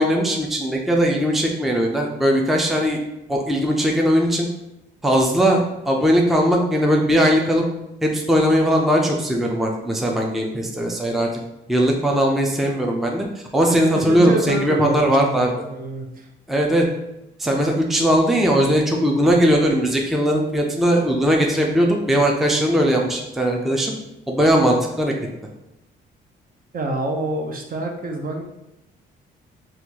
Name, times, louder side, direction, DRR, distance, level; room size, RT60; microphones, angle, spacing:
voice 1, 0.0-3.0 3.3-4.5 5.0-7.6 8.0-11.3 11.7-13.2 13.5-15.5 16.5-16.9 17.4-23.9 24.3-25.1, equal, ahead, 0 dB, 0.5 m, -19 dB
voice 2, 13.7-16.3 26.7-28.4, right 2 dB, 45° right, 2 dB, 0.7 m, -27 dB
4.3 x 2.4 x 2.8 m, 0.90 s
cardioid pair, 90°, 20 cm